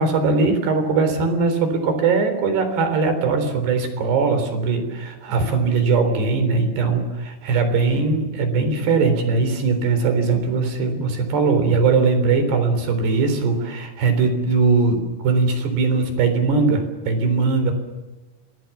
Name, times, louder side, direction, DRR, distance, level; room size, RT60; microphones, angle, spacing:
voice 1, 0.0-17.7, right 4 dB, 90° right, 8 dB, 5.9 m, -20 dB
26.5 x 21.5 x 7.2 m, 1.2 s
omnidirectional pair, 4.6 m